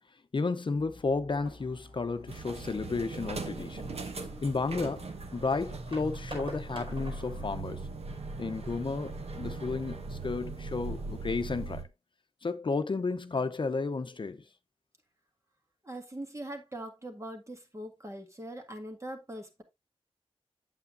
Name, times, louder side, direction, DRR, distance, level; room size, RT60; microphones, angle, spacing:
voice 1, 0.3-3.9 4.4-7.8 8.4-11.8 12.4-14.4, left 4 dB, 50° left, 0.7 m, -32 dB
sound 1, 0.7-5.8, left 1 dB, 10° right, 1.7 m, -53 dB
sound 2, 1.3-7.6, right 1 dB, 60° right, 5.0 m, -49 dB
sound 3, 2.3-11.8, right 3 dB, 90° right, 1.2 m, -39 dB
voice 2, 15.8-19.6, right 1 dB, 30° right, 1.8 m, -42 dB
8.4 x 8.0 x 2.6 m
wide cardioid pair, 95°, 10 cm